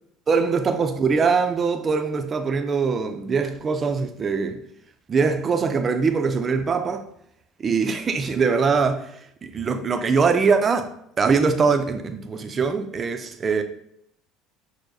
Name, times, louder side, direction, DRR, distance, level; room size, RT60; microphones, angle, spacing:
voice 1, 0.3-4.6 5.1-7.1 7.6-9.1 9.4-10.9 11.2-13.6, right 5 dB, 35° right, 0.5 m, -22 dB
6.3 x 2.1 x 2.6 m
supercardioid pair, 80°, 0 cm